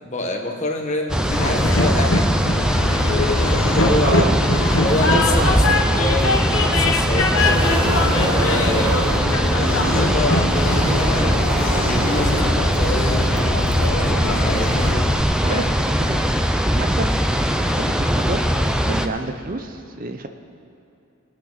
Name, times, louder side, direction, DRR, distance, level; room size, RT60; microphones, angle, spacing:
voice 1, 0.0-2.7 3.3-4.3 4.7-7.7 8.1-11.5 11.8-13.2 13.8-15.0 15.5-15.7, left 1 dB, 35° left, 2 dB, 1.4 m, -27 dB
sound 1, 1.1-19.1, equal, 5° right, 0.4 m, -20 dB
Train, 1.3-15.2, left 2 dB, 70° left, 1.0 m, -23 dB
voice 2, 4.0-4.4 5.1-5.8 14.2-14.4 15.4-15.6 16.1-16.2 16.7-17.1 17.6-18.4 18.9-20.3, right 2 dB, 40° right, 6 dB, 0.7 m, -28 dB
sound 2, 7.4-12.5, equal, 25° right, 3.4 m, -26 dB
21.5 x 8.8 x 4.1 m, 2.8 s
head